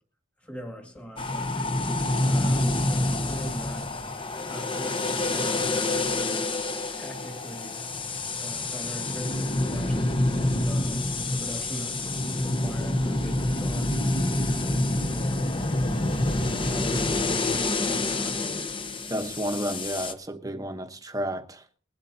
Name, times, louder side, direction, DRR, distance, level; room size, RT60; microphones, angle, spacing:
voice 1, 0.4-3.9 4.5-6.5 6.9-7.8 8.4-14.0 14.6-15.8 16.7-18.7, equal, 5° left, 2.0 m, -41 dB
sound 1, 1.2-20.1, left 2 dB, 25° left, 0.9 m, -27 dB
voice 2, 19.1-21.6, equal, 15° right, 1.0 m, -31 dB
20.5 x 12.0 x 2.8 m
head